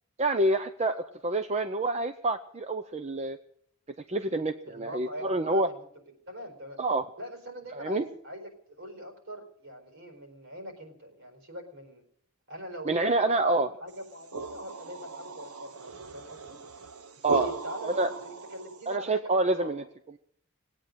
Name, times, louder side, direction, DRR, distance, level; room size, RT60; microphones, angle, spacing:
voice 1, 0.2-3.4 4.1-5.7 6.8-7.1 7.7-8.1 12.9-13.7 17.2-17.5 17.8-18.1 18.9-19.8, right 2 dB, 30° right, 8 dB, 0.7 m, -27 dB
voice 2, 4.7-5.9 6.3-6.8 7.2-12.0 12.5-16.6 17.3-19.9, equal, 60° right, 5 dB, 4.5 m, -42 dB
sound 1, 14.0-18.9, right 5 dB, 75° right, 1.2 m, -38 dB
19.5 x 8.9 x 7.9 m, 0.67 s
head